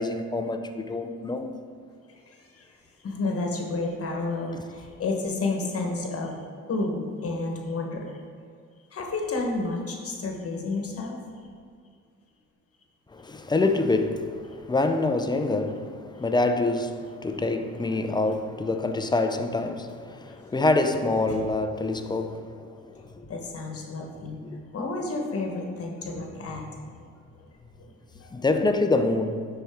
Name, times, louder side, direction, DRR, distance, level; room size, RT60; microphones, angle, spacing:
voice 1, 0.0-1.6 4.5-4.6 13.1-23.0 28.3-29.5, left 2 dB, 15° left, 7 dB, 0.5 m, -26 dB
voice 2, 2.1-2.7 3.0-6.4 6.7-8.2 8.9-11.2 20.3-20.4 21.3-21.5 23.3-24.4 24.7-26.8 27.8-27.9 28.2-28.3, left 3 dB, 50° left, 2 dB, 1.2 m, -31 dB
10.0 x 4.4 x 3.5 m, 2.2 s
cardioid pair, 90°, 30 cm